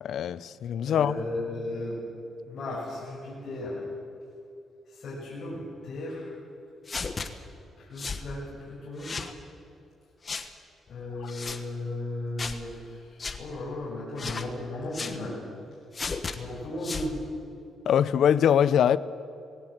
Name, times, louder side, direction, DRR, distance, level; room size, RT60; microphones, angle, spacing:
voice 1, 0.0-1.2 11.2-11.3 17.9-19.0, left 9 dB, 70° left, 0.6 m, -23 dB
voice 2, 0.9-2.0 2.5-3.8 4.9-6.3 7.8-8.4 8.7-9.1 10.9-15.4 16.3-17.1, left 2 dB, 55° left, 6.5 m, -35 dB
sound 1, 6.9-7.3 8.0-8.2 9.0-9.3 10.2-10.5 11.3-11.6 12.4-12.6 13.2-13.4 14.2-14.5 14.9-15.2 15.9-16.4 16.8-17.1, left 4 dB, 35° left, 1.3 m, -34 dB
20.0 x 17.5 x 8.0 m
cardioid pair, 105°, 0 cm